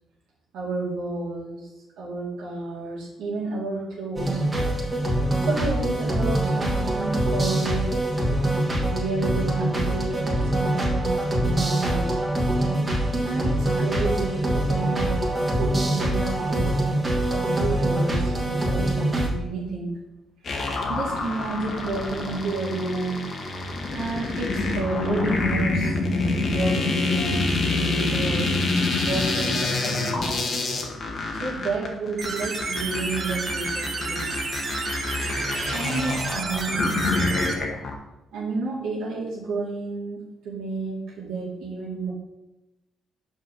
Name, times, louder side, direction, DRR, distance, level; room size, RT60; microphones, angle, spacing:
voice 1, 0.5-1.7 2.0-4.5 5.4-8.2 8.8-12.2 13.2-16.7 17.3-20.0 20.9-23.3 23.6-26.1 26.4-28.5 29.0-30.5 31.4-34.3 35.7-37.0 38.3-42.1, right 3 dB, 90° right, -7 dB, 2.2 m, -31 dB
sound 1, 4.2-19.3, right 1 dB, 20° right, 1.8 m, -24 dB
sound 2, 20.4-37.9, left 3 dB, 50° left, 1.4 m, -27 dB
sound 3, 32.2-37.5, right 4 dB, 45° right, 1.2 m, -31 dB
5.5 x 4.6 x 5.9 m, 0.97 s
cardioid pair, 90°, 0 cm